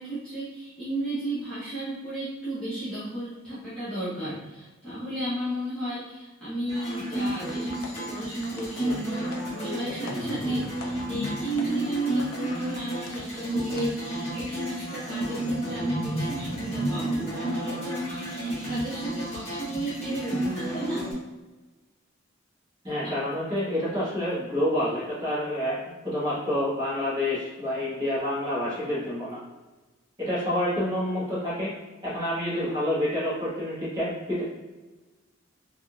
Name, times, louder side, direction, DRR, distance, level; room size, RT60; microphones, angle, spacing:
voice 1, 0.0-21.1 23.0-23.1, right 1 dB, 5° left, -14 dB, 0.7 m, -34 dB
sound 1, 6.7-21.1, right 1 dB, 30° left, 1.2 m, -31 dB
sound 2, 7.5-13.4 13.8-13.9, left 3 dB, 90° left, 0.5 m, -45 dB
voice 2, 22.8-29.4 30.2-31.7 32.0-34.4, left 1 dB, 20° right, -10 dB, 1.1 m, -28 dB
3.6 x 2.4 x 2.3 m, 1.2 s
head